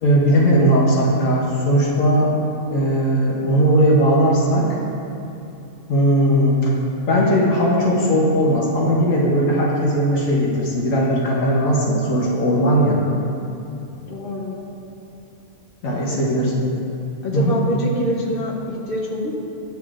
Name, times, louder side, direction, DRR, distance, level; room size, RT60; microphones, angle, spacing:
voice 1, 0.0-2.3 2.7-4.7 5.9-6.7 7.1-13.0 15.8-16.5 17.3-17.6, equal, 70° left, -4 dB, 1.3 m, -18 dB
voice 2, 14.1-14.6 16.1-16.2 17.2-19.4, equal, 45° left, -2 dB, 1.0 m, -25 dB
10.5 x 5.9 x 2.5 m, 2.7 s
omnidirectional pair, 1.5 m